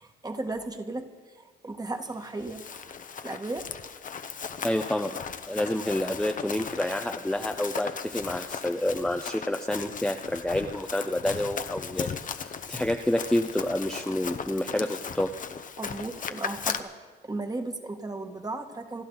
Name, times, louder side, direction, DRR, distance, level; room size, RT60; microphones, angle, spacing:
voice 1, 0.0-2.9 3.2-3.7 15.8-17.0 17.2-19.1, right 2 dB, 20° right, 6 dB, 1.6 m, -35 dB
Run, 2.2-16.8, left 6 dB, 40° left, 0.9 m, -37 dB
voice 2, 4.6-15.3, left 1 dB, 5° left, 4 dB, 0.7 m, -29 dB
28.0 x 11.5 x 3.9 m, 1.4 s
cardioid pair, 90°, 20 cm